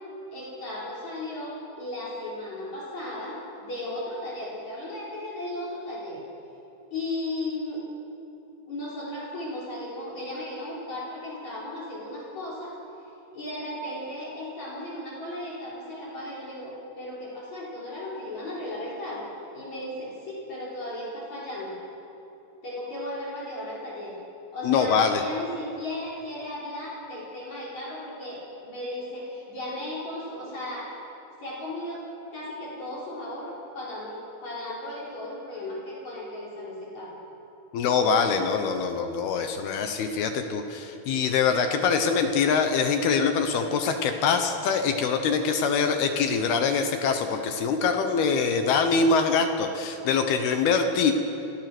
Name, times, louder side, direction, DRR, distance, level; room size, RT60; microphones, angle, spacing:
voice 1, 0.3-6.2 6.9-7.8 8.7-12.8 13.3-21.7 22.6-24.1 24.5-31.0 31.4-32.0 32.3-37.2, left 1 dB, 40° left, -5 dB, 4.9 m, -35 dB
voice 2, 24.6-25.2 37.7-51.1, left 5 dB, 70° left, 6 dB, 2.7 m, -24 dB
29.0 x 17.5 x 6.2 m, 2.9 s
omnidirectional pair, 5.4 m